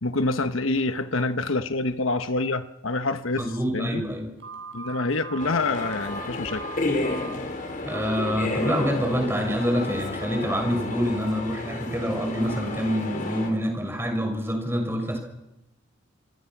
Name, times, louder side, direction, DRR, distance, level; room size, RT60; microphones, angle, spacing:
voice 1, 0.0-4.0 4.7-6.6, left 2 dB, 80° left, 1.3 m, -26 dB
voice 2, 3.4-4.3 7.8-15.2, equal, 10° right, 6.4 m, -26 dB
Telephone, 4.4-7.3 7.9-8.2 8.6-8.9, right 5 dB, 60° right, 7.9 m, -39 dB
sound 1, 5.4-13.5, left 2 dB, 40° left, 4.6 m, -31 dB
27.5 x 24.5 x 6.1 m
head